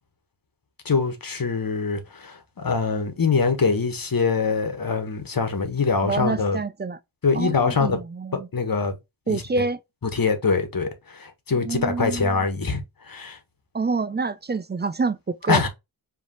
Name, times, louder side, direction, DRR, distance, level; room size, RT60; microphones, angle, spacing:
voice 1, 0.8-6.6 7.2-8.0 8.5-9.0 9.3-9.6 10.1-13.4 15.5-15.7, left 4 dB, 45° left, 1.3 m, -24 dB
voice 2, 6.0-7.0 7.3-8.5 9.3-9.8 11.5-12.4 13.7-15.7, right 4 dB, 25° right, 0.4 m, -27 dB
5.2 x 3.2 x 2.9 m
wide cardioid pair, 75°, 48 cm